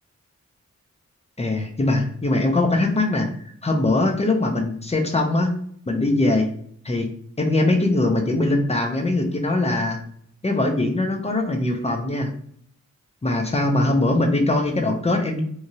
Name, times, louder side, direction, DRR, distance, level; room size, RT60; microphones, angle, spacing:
voice 1, 1.4-3.3 3.6-5.5 5.9-6.5 6.8-7.1 7.4-10.0 10.4-12.3 13.2-15.4, left 2 dB, 20° left, 3 dB, 0.5 m, -21 dB
3.0 x 2.3 x 2.7 m, 0.63 s
wide cardioid pair, 100°, 30 cm